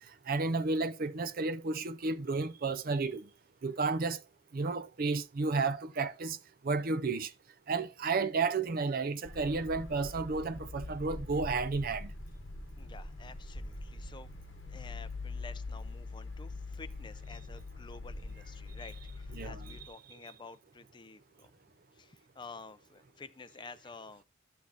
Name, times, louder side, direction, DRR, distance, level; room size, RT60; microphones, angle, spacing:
voice 1, 0.3-3.3 3.6-4.2 4.5-6.4 6.6-7.3 7.7-12.1 19.3-19.9, right 4 dB, 50° right, 0.5 m, -32 dB
sound 1, 9.2-19.9, left 2 dB, 70° left, 1.1 m, -43 dB
voice 2, 12.8-14.3 14.6-21.5 21.9-24.2, left 4 dB, 25° left, 0.5 m, -51 dB
12.5 x 6.3 x 2.7 m
head